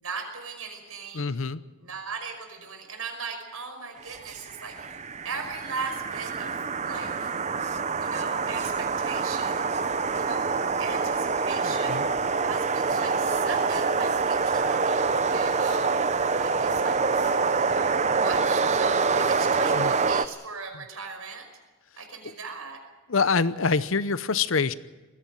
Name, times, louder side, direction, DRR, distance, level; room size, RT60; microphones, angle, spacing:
voice 1, 0.0-1.3 1.8-5.0 5.2-7.3 8.0-9.7 10.2-12.1 12.4-15.9 16.4-16.9 17.4-21.4 22.0-22.8, right 5 dB, 85° right, 5 dB, 5.5 m, -38 dB
voice 2, 1.1-1.6 11.6-12.1 19.7-19.9 20.7-20.8 22.2-22.3 23.1-24.7, left 4 dB, 65° left, 15 dB, 0.8 m, -26 dB
sound 1, 4.1-20.3, right 4 dB, 30° right, 0.7 m, -26 dB
20.5 x 16.0 x 9.2 m, 1.2 s
head